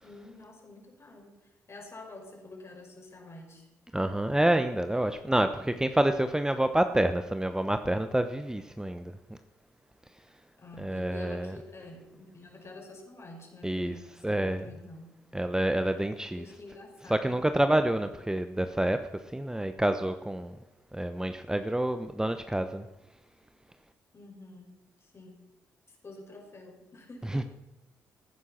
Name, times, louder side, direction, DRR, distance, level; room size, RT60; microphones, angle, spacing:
voice 1, 0.0-3.7 10.6-15.2 16.3-17.4 24.1-25.4 25.9-27.5, left 2 dB, 40° left, 1 dB, 5.3 m, -48 dB
voice 2, 3.9-9.1 10.8-11.5 13.6-13.9 14.2-14.6 15.3-16.4 17.1-20.5 20.9-22.8 27.3-27.4, right 1 dB, 10° right, 9 dB, 1.0 m, -28 dB
16.0 x 9.7 x 5.8 m, 0.96 s
hypercardioid pair, 45°, 7 cm